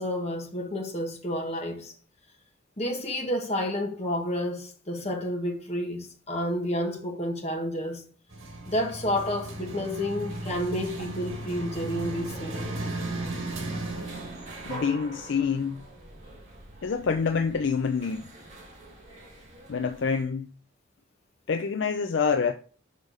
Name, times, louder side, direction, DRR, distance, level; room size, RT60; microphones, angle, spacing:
voice 1, 0.0-1.9 2.8-8.0 8.7-12.7, left 1 dB, 30° left, 1.4 m, -30 dB
sound 1, 8.3-16.3, right 2 dB, 80° right, 1.7 m, -36 dB
sound 2, 10.1-20.2, right 2 dB, 35° right, 2.2 m, -45 dB
voice 2, 14.7-15.8 16.8-18.3 19.7-20.5 21.5-22.5, left 5 dB, 60° left, 0.4 m, -26 dB
6.3 x 5.0 x 3.9 m
head